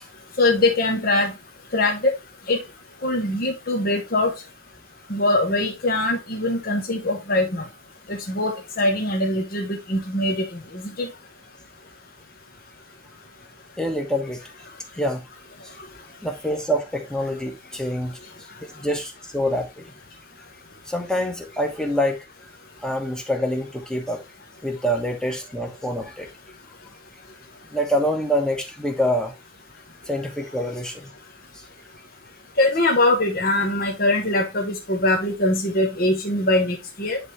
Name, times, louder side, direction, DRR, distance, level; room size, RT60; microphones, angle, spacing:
voice 1, 0.4-1.3 1.7-2.1 2.5-2.6 3.0-4.3 5.1-7.6 8.1-10.4 11.0-11.1 32.6-37.2, left 2 dB, 50° left, 1.2 m, -22 dB
voice 2, 13.8-14.4 14.9-15.2 16.2-18.1 18.7-19.8 20.9-22.2 22.8-24.2 24.6-26.3 27.7-29.3 30.1-31.1, equal, 5° left, 1.2 m, -25 dB
10.5 x 3.6 x 3.1 m
head